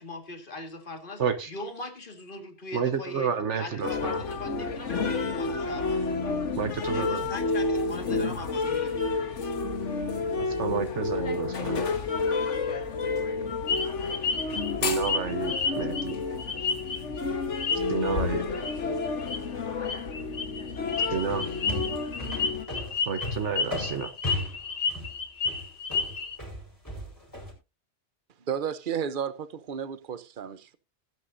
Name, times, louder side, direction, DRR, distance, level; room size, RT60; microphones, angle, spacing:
voice 1, 0.0-1.2 1.5-3.3 3.6-6.1 6.9-9.2, left 2 dB, 45° left, 2.1 m, -40 dB
voice 2, 1.2-1.5 2.7-4.2 6.6-7.3 9.4-9.5 10.4-11.8 14.8-16.2 17.9-18.4 21.1-21.5 23.1-24.1, right 6 dB, 80° right, 1.4 m, -30 dB
sound 1, 3.8-22.7, left 4 dB, 90° left, 1.7 m, -30 dB
sound 2, 13.7-17.2 17.5-18.1 18.5-18.8 19.0-19.4 19.8-26.4, left 5 dB, 70° left, 1.6 m, -31 dB
sound 3, 21.3-27.5, left 1 dB, 15° left, 4.4 m, -36 dB
voice 3, 28.5-30.8, right 8 dB, 50° right, 1.0 m, -32 dB
17.5 x 9.5 x 2.7 m
omnidirectional pair, 1.2 m